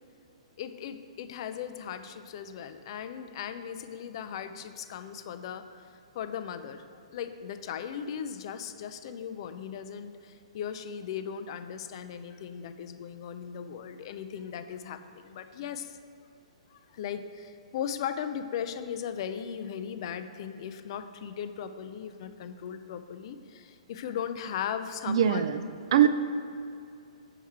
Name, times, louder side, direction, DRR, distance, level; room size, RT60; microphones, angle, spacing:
voice 1, 0.6-6.8 7.1-16.0 16.7-25.5, left 8 dB, 50° left, 10 dB, 0.4 m, -38 dB
voice 2, 25.1-25.6 25.9-26.1, right 10 dB, 55° right, 11 dB, 0.4 m, -21 dB
5.7 x 4.6 x 4.5 m, 2.4 s
hypercardioid pair, 125°, 3 cm